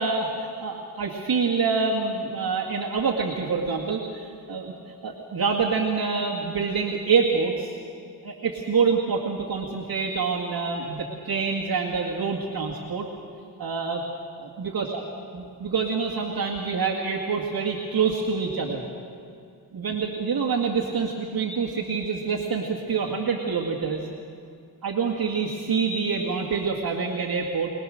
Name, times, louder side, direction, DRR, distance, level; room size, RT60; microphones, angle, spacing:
voice 1, 0.0-4.7 5.0-7.8 8.2-13.1 13.6-14.0 14.4-15.0 15.3-18.8 19.7-24.0 24.8-27.7, right 5 dB, 60° right, -2 dB, 2.1 m, -26 dB
25.0 x 20.0 x 6.6 m, 2.4 s
wide cardioid pair, 100°, 41 cm